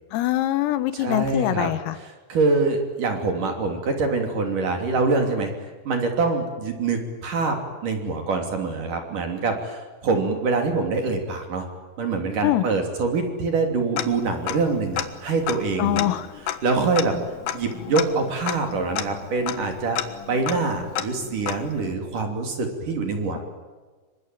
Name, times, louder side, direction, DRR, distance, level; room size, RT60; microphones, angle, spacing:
voice 1, 0.1-2.0 12.4-12.7 15.8-16.3, left 14 dB, 90° left, 12 dB, 4.0 m, -23 dB
voice 2, 0.9-1.7 2.3-5.5 5.9-11.7 12.0-16.1 16.6-17.1 17.5-20.0 20.3-23.4, right 3 dB, 45° right, 4 dB, 4.0 m, -25 dB
Tick-tock, 14.0-14.7 15.0-15.1 15.4-21.9, left 11 dB, 65° left, 2.9 m, -31 dB
27.0 x 23.5 x 9.3 m, 1.3 s
omnidirectional pair, 5.9 m